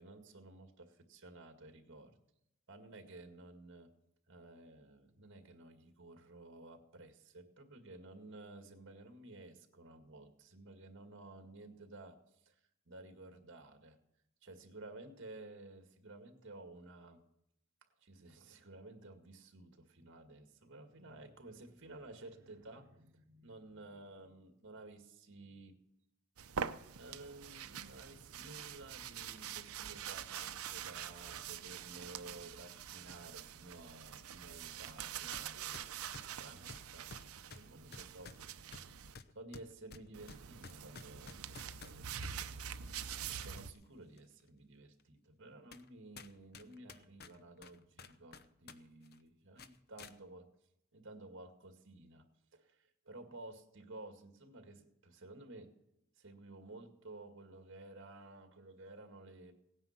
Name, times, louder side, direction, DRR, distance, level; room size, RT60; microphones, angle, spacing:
voice 1, 0.0-2.1 2.7-3.9 4.3-14.0 14.4-17.2 18.0-25.8 27.0-38.4 39.0-42.6 43.2-50.5 50.9-52.3 52.5-55.7 56.2-59.5, right 2 dB, 60° right, 6 dB, 2.1 m, -54 dB
sound 1, 26.4-39.1 40.1-43.7, right 8 dB, 90° right, 0.7 m, -45 dB
sound 2, 35.3-35.5 35.7-42.4 43.0-43.8 44.2-44.3 45.0-45.1 45.7-45.9 46.2-48.8 49.0-49.2 49.6-50.1, left 4 dB, 50° left, 0.8 m, -53 dB
17.5 x 9.7 x 5.9 m, 0.81 s
head